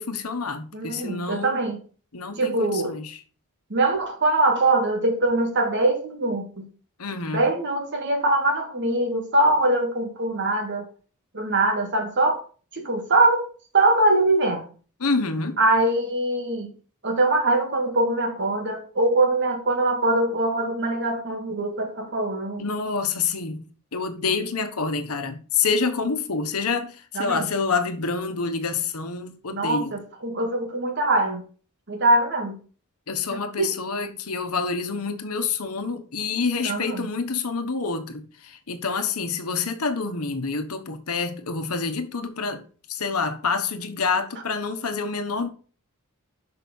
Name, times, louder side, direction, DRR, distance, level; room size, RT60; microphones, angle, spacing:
voice 1, 0.0-1.6 2.1-3.1 7.0-7.5 15.0-15.6 22.6-29.9 33.1-42.6 42.9-45.5, left 4 dB, 80° left, 1.1 m, -27 dB
voice 2, 0.7-1.8 2.4-3.0 3.7-6.7 7.3-10.9 11.3-12.4 12.7-13.5 13.7-14.7 15.6-16.7 17.0-22.7 27.1-27.5 29.5-31.4 31.9-32.6 33.3-33.7 36.6-37.1, right 2 dB, 50° right, 1.9 m, -23 dB
6.2 x 5.7 x 5.3 m
head